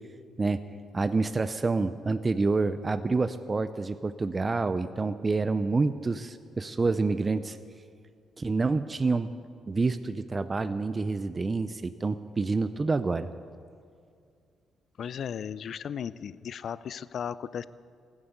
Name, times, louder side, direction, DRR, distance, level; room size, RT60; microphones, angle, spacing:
voice 1, 0.9-7.6 8.4-9.3 9.7-13.3, right 3 dB, 30° right, 11 dB, 0.5 m, -28 dB
voice 2, 15.0-17.7, left 8 dB, 60° left, 17 dB, 0.4 m, -36 dB
16.0 x 11.5 x 8.1 m, 2.3 s
cardioid pair, 90°, 0 cm